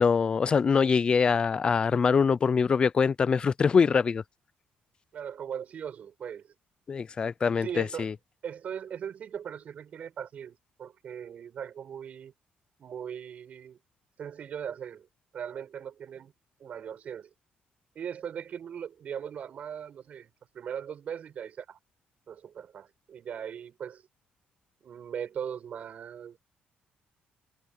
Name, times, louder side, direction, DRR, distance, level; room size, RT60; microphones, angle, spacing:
voice 1, 0.0-4.2 6.9-8.1, left 5 dB, 30° left, 0.4 m, -24 dB
voice 2, 5.1-6.5 7.6-8.1 8.4-12.3 12.8-13.8 14.2-15.1 15.3-16.3 16.6-17.3 17.9-21.8 22.3-24.0 24.8-26.4, right 8 dB, 45° right, 8.0 m, -39 dB
cardioid pair, 155°, 3 cm